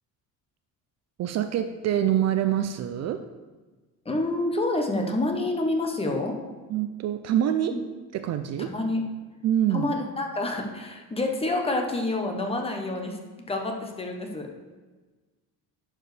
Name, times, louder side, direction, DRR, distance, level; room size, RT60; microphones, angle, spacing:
voice 1, 1.2-3.2 6.7-7.8 8.1-8.7 9.4-9.9, right 10 dB, 50° right, 9 dB, 0.4 m, -25 dB
voice 2, 4.0-6.4 7.7-7.8 8.7-9.0 9.7-13.2 13.5-14.5, left 2 dB, 15° left, 2 dB, 0.9 m, -28 dB
11.0 x 4.8 x 3.3 m, 1.3 s
cardioid pair, 145°, 35 cm